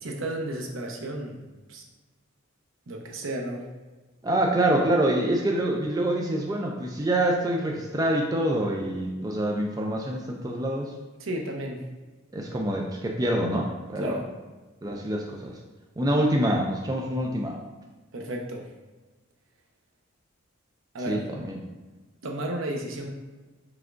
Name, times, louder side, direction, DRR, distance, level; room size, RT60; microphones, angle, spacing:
voice 1, 0.0-1.4 1.7-1.8 2.9-3.6 11.2-11.9 14.0-14.3 18.1-18.7 20.9-21.2 22.2-23.1, right 1 dB, 75° right, 1 dB, 0.7 m, -33 dB
voice 2, 4.2-10.9 12.3-14.2 14.8-15.5 16.0-17.6 21.1-21.6, right 1 dB, 20° right, 0 dB, 0.3 m, -26 dB
4.9 x 3.4 x 2.5 m, 1.2 s
head